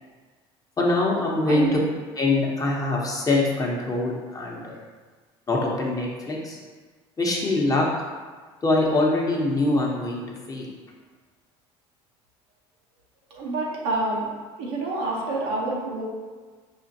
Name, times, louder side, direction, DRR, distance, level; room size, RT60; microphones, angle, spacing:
voice 1, 0.8-1.8 2.2-4.8 5.5-6.6 7.2-7.9 8.6-10.2 10.5-10.7, left 2 dB, 25° left, -2 dB, 0.8 m, -23 dB
voice 2, 1.5-1.8 13.3-14.3 14.6-16.0, right 2 dB, 85° right, -3 dB, 0.9 m, -27 dB
4.9 x 2.4 x 2.7 m, 1.4 s
supercardioid pair, 85°, 13 cm